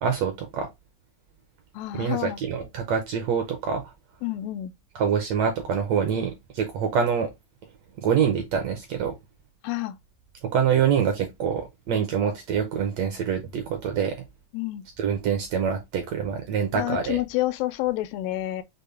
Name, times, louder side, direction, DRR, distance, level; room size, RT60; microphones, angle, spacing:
voice 1, 0.0-0.7 1.9-3.9 4.9-7.3 8.0-9.1 10.5-14.2 15.0-17.2, right 7 dB, 75° right, 1.6 m, -25 dB
voice 2, 1.7-2.4 4.2-4.7 9.6-10.0 14.5-14.9 16.7-18.6, left 16 dB, 90° left, 2.3 m, -28 dB
6.7 x 2.2 x 3.3 m
omnidirectional pair, 3.9 m